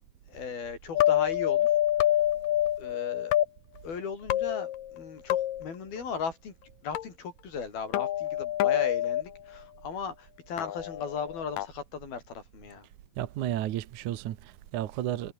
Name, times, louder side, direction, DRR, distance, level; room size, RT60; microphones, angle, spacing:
voice 1, 0.3-1.7 2.8-3.3 3.8-6.5 6.8-12.9, left 6 dB, 90° left, 6.6 m, -37 dB
sound 1, 1.0-3.5 4.3-5.0 5.3-5.7 7.0-7.1 7.9-9.2 10.6-11.7, left 13 dB, 70° left, 2.9 m, -26 dB
voice 2, 13.2-15.3, right 12 dB, 65° right, 2.4 m, -32 dB
omnidirectional pair, 4.2 m